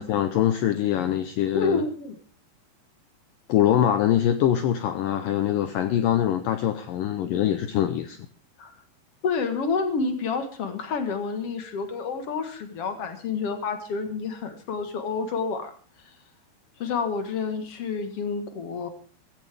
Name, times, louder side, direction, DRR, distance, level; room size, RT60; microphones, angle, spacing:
voice 1, 0.0-1.8 3.5-8.2, left 11 dB, 80° left, 9 dB, 2.0 m, -23 dB
voice 2, 1.5-2.2 8.6-8.7 9.2-15.7 16.8-18.9, left 5 dB, 60° left, 7 dB, 1.6 m, -29 dB
16.5 x 16.0 x 3.5 m, 0.40 s
omnidirectional pair, 4.9 m